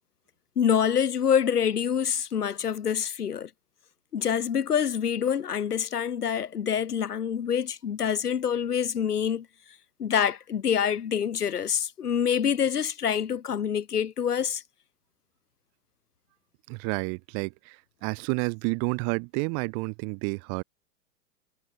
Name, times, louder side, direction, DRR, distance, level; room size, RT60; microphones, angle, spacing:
voice 1, 0.6-3.5 4.1-9.5 10.0-14.6, left 8 dB, 85° left, 3.5 m, -26 dB
voice 2, 16.7-20.6, right 40 dB or more, 35° right, 0.8 m, -30 dB
hypercardioid pair, 110°, 45 cm